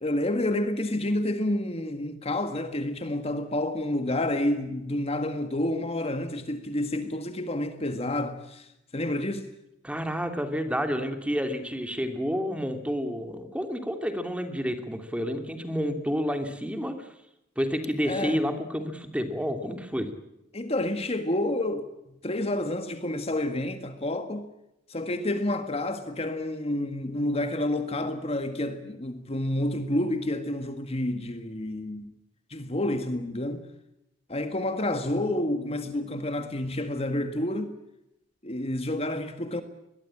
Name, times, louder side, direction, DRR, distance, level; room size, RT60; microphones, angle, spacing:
voice 1, 0.0-9.5 18.1-18.4 20.5-24.5 24.9-32.1 32.5-33.7 34.3-37.7 38.4-39.6, left 1 dB, 35° left, 1.8 m, -29 dB
voice 2, 9.8-17.1 17.6-20.1, equal, 5° right, 2.7 m, -30 dB
23.0 x 21.5 x 8.8 m
head